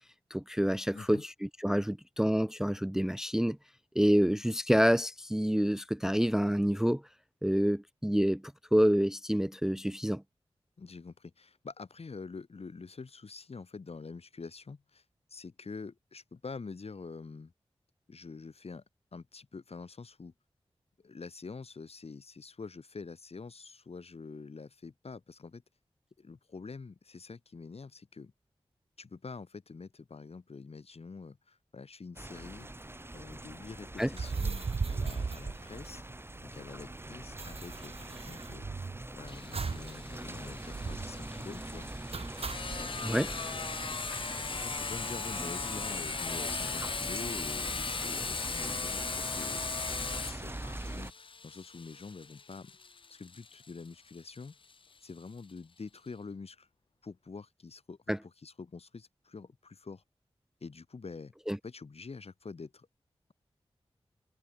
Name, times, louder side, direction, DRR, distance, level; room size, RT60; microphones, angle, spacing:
voice 1, 0.3-3.6 4.0-7.0 7.4-8.4 8.7-10.2 34.0-34.1 43.0-43.3 58.1-58.2 61.5-61.6, equal, 5° right, 0.4 m, -27 dB
voice 2, 10.8-15.0 15.3-17.5 18.1-18.8 19.1-20.3 21.0-25.6 26.2-28.3 29.0-32.7 33.1-36.0 36.4-38.7 39.1-41.9 42.8-43.7 44.5-52.7 53.1-54.6 55.0-56.7 57.0-60.0 60.6-61.3 61.6-62.9, left 4 dB, 70° left, 7.3 m, -46 dB
sound 1, 32.2-51.1, right 1 dB, 20° right, 2.7 m, -43 dB
sound 2, 34.1-36.4 36.6-36.7 36.9-39.0 39.5-40.0 40.2-40.3 40.7-41.2 42.1-42.8, right 4 dB, 65° right, 1.7 m, -36 dB
Sawing, 39.3-54.7, left 4 dB, 55° left, 0.6 m, -38 dB
cardioid pair, 50°, 11 cm